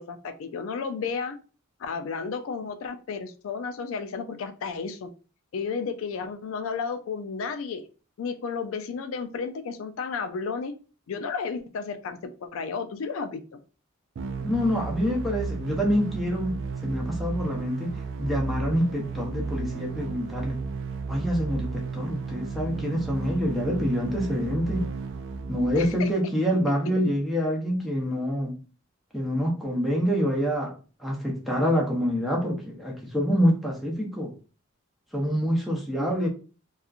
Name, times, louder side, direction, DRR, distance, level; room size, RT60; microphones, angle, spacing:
voice 1, 0.0-1.4 1.8-5.1 5.5-7.9 8.2-10.7 11.1-13.6 25.7-26.1 36.0-36.1, left 5 dB, 75° left, 0.3 m, -32 dB
sound 1, 14.2-26.1, right 4 dB, 60° right, 0.3 m, -34 dB
voice 2, 14.4-20.6 21.1-24.9 25.5-28.6 29.1-30.7 31.0-34.3 35.1-36.3, equal, ahead, 0.6 m, -26 dB
2.8 x 2.3 x 2.4 m
head